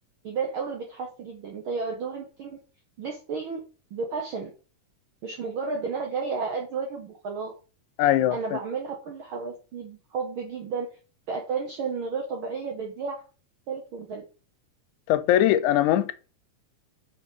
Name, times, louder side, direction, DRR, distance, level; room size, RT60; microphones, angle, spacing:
voice 1, 0.2-2.6 3.0-3.6 3.9-4.5 5.2-7.5 8.3-10.9 11.3-13.2 13.7-14.2, right 5 dB, 75° right, 1.2 m, -32 dB
voice 2, 8.0-8.6 15.1-16.1, left 12 dB, 80° left, 1.9 m, -21 dB
5.7 x 4.0 x 5.4 m
omnidirectional pair, 3.5 m